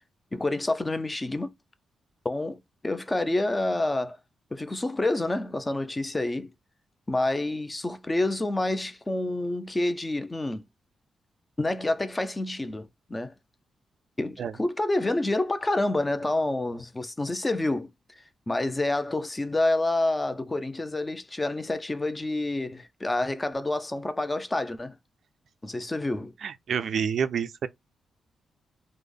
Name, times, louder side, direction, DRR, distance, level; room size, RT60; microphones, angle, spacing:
voice 1, 0.3-1.5 2.2-4.2 4.5-6.5 7.1-10.6 11.6-13.3 14.2-24.9 25.6-26.3, left 2 dB, 15° left, 0.4 m, -28 dB
voice 2, 26.4-27.7, right 7 dB, 60° right, 0.3 m, -28 dB
3.2 x 2.1 x 3.6 m
cardioid pair, 110°, 0 cm